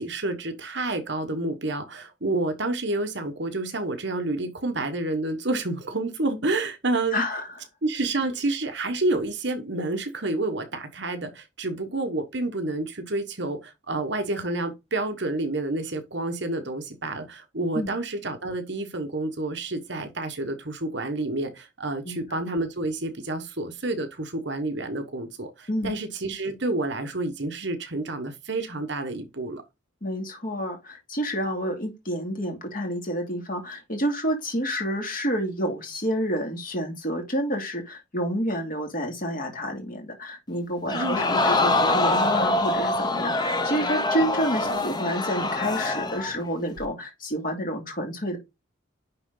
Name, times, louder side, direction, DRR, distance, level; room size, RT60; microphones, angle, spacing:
voice 1, 0.0-7.2 7.8-29.6 40.9-41.3 44.7-44.9, right 2 dB, 55° right, 1.3 m, -29 dB
voice 2, 7.1-7.5 17.7-17.9 22.0-22.4 25.7-25.9 30.0-48.4, equal, 40° left, 2.5 m, -29 dB
Crowd, 40.9-46.3 46.8-46.9, left 2 dB, 20° left, 0.9 m, -24 dB
10.5 x 3.7 x 3.9 m
head